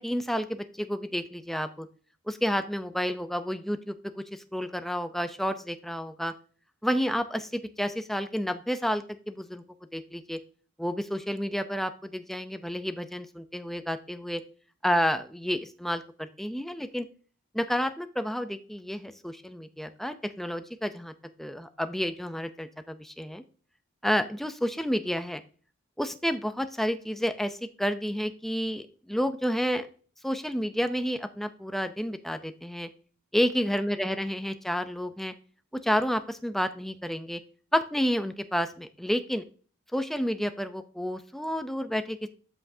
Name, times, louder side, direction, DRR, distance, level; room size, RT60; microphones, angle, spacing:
voice 1, 0.0-1.9 2.3-6.3 6.8-9.6 9.9-10.4 10.8-14.4 14.8-17.1 17.5-21.1 21.4-23.4 24.0-25.4 26.0-29.9 30.2-32.9 33.3-35.3 35.8-37.4 37.7-39.4 39.9-42.3, equal, ahead, 9 dB, 0.5 m, -30 dB
12.5 x 5.7 x 2.7 m, 0.41 s
head